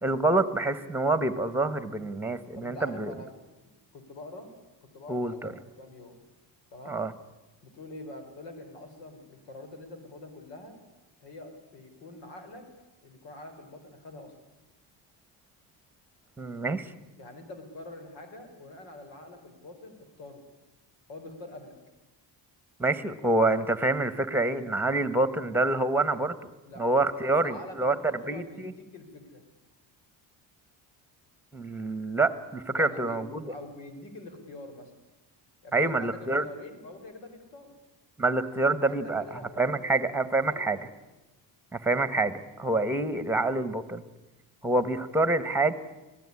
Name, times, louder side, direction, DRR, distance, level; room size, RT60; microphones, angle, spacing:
voice 1, 0.0-3.1 5.1-5.5 6.9-7.1 16.4-16.9 22.8-26.5 26.8-27.9 28.3-28.7 31.5-33.4 35.7-36.4 38.2-39.2 39.6-40.8 41.7-44.0 44.6-45.7, right 2 dB, 5° right, 13 dB, 1.5 m, -27 dB
voice 2, 2.5-3.3 3.6-4.5 4.8-6.2 6.7-7.0 7.6-10.8 11.2-12.6 13.0-14.3 17.2-20.4 21.1-21.8 26.6-26.8 27.2-29.5 32.7-34.9 35.6-37.7 38.7-40.7, left 2 dB, 90° left, 7 dB, 5.1 m, -45 dB
25.5 x 17.0 x 9.9 m, 1.1 s
cardioid pair, 125°, 42 cm